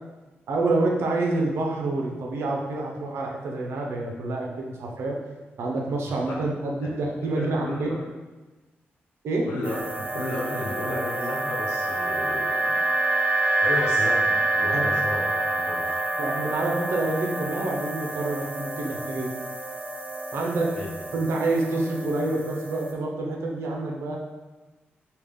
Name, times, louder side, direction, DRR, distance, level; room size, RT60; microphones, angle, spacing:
voice 1, 0.5-5.2 5.6-7.9 9.2-9.5 14.7-14.9 16.2-19.3 20.3-20.7 21.1-24.2, right 2 dB, 80° right, 0 dB, 0.6 m, -27 dB
voice 2, 7.4-7.9 9.4-12.9 13.5-16.0 20.7-20.9, left 1 dB, 90° left, -4 dB, 1.0 m, -33 dB
sound 1, 9.6-22.9, right 2 dB, 35° right, 0.8 m, -27 dB
3.5 x 2.4 x 3.7 m, 1.2 s
cardioid pair, 80°, 4 cm